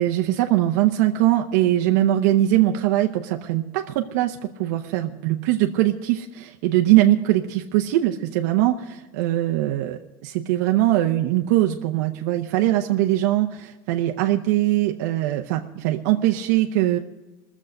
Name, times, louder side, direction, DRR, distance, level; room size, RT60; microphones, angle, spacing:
voice 1, 0.0-17.0, right 14 dB, 80° right, 3 dB, 0.8 m, -21 dB
21.0 x 7.3 x 7.8 m, 1.1 s
cardioid pair, 165°, 9 cm